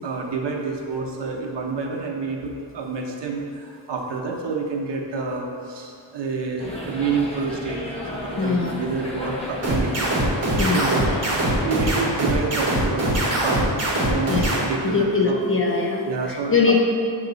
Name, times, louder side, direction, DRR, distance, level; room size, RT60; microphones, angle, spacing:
voice 1, 0.0-10.2 10.6-11.0 11.3-13.7 14.1-15.4 16.0-16.8, right 4 dB, 60° right, 0 dB, 0.9 m, -28 dB
sound 1, 6.6-11.7, left 1 dB, 15° left, 1.2 m, -34 dB
voice 2, 8.4-8.8 10.6-10.9 14.3-14.5 14.9-16.8, left 4 dB, 30° left, -1 dB, 0.7 m, -21 dB
sound 2, 9.6-14.6, right 1 dB, 35° right, 1.4 m, -22 dB
8.1 x 3.0 x 3.9 m, 2.4 s
cardioid pair, 105°, 47 cm